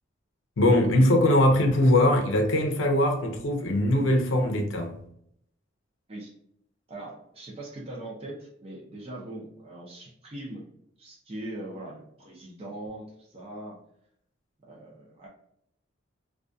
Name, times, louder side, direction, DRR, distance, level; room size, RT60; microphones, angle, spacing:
voice 1, 0.6-5.0, left 1 dB, 80° left, 0.6 m, -21 dB
voice 2, 6.9-10.7 11.0-13.8 14.7-15.3, right 1 dB, 30° right, 0.5 m, -41 dB
2.3 x 2.3 x 2.5 m
head